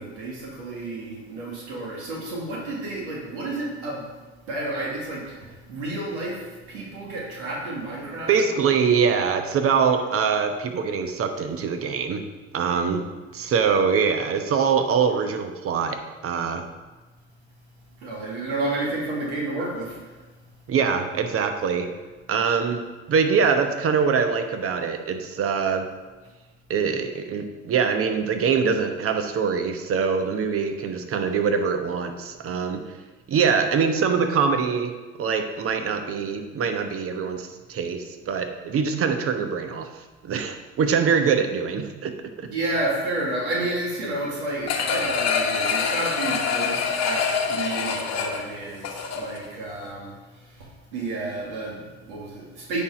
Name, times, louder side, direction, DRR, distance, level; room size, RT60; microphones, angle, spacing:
voice 1, 0.0-4.1 4.5-8.7 18.0-20.4 42.5-52.8, right 2 dB, 80° right, -3 dB, 2.0 m, -31 dB
voice 2, 8.3-12.2 12.5-13.0 13.3-16.6 20.7-21.9 22.3-22.8 23.1-25.9 26.7-32.8 33.3-34.9 35.2-39.9 40.2-42.5, right 6 dB, 40° right, 6 dB, 1.0 m, -23 dB
sound 1, 44.7-49.5 49.9-50.0, left 5 dB, 50° left, 1.1 m, -25 dB
8.6 x 4.5 x 4.9 m, 1.3 s
hypercardioid pair, 70°, 35 cm